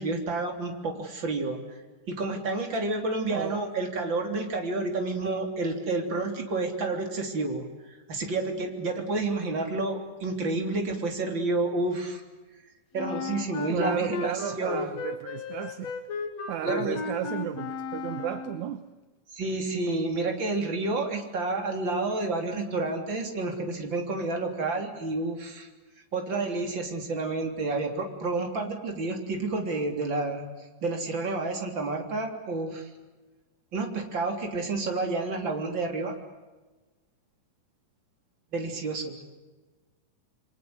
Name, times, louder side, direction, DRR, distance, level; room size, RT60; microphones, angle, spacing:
voice 1, 0.0-1.8 2.1-7.7 8.1-12.2 12.9-14.9 16.7-17.0 19.3-25.7 26.1-30.5 30.8-32.9 33.7-36.1 38.5-39.2, right 3 dB, 35° right, 4 dB, 4.0 m, -30 dB
Wind instrument woodwind instrument, 13.0-18.7, left 5 dB, 55° left, 2.8 m, -35 dB
voice 2, 13.7-15.9 16.5-18.8, right 11 dB, 70° right, 11 dB, 2.3 m, -33 dB
28.5 x 24.0 x 8.0 m, 1.2 s
omnidirectional pair, 3.7 m